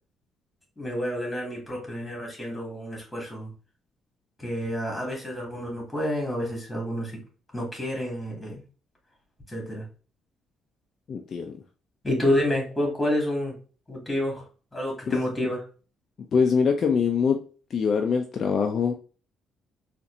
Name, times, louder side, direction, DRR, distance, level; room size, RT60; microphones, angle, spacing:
voice 1, 0.8-3.5 4.4-7.2 7.5-8.6 9.5-9.9 12.0-13.5 13.9-14.4 14.7-15.6, left 1 dB, 15° left, 0 dB, 1.9 m, -29 dB
voice 2, 11.1-11.5 15.1-15.2 16.3-17.4 17.7-18.9, left 6 dB, 50° left, 3 dB, 0.4 m, -23 dB
4.1 x 2.5 x 2.6 m, 0.37 s
cardioid pair, 100°, 0 cm